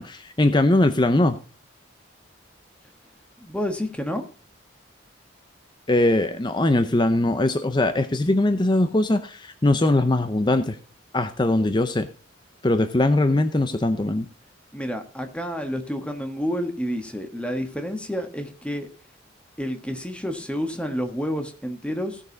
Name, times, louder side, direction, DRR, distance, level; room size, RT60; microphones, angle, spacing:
voice 1, 0.0-1.4 5.9-10.8 11.1-12.1 12.6-14.3, left 2 dB, 20° left, 0.6 m, -21 dB
voice 2, 3.4-4.2 14.7-18.9 19.6-22.2, equal, 5° left, 1.4 m, -29 dB
16.5 x 6.6 x 4.0 m
head